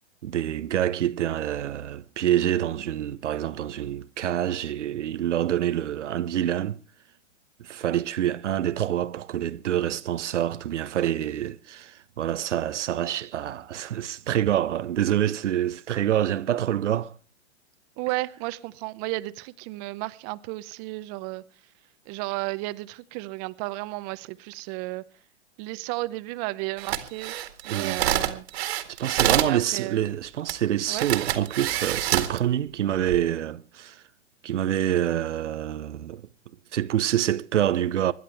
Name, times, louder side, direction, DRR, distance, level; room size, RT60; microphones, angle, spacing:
voice 1, 0.2-6.8 7.6-17.1 27.7-28.0 28.9-34.0 34.4-36.2 36.7-38.1, right 11 dB, 80° right, 0.8 m, -26 dB
voice 2, 18.0-21.4 22.1-25.0 25.6-27.3 27.6-28.4 29.2-30.0 30.9-31.1, right 21 dB, 35° right, 0.8 m, -33 dB
sound 1, 26.8-29.6 30.5-30.6 30.9-32.4 32.9-33.2, right 12 dB, 60° right, 1.9 m, -26 dB
25.5 x 11.0 x 3.4 m
hypercardioid pair, 125°, 36 cm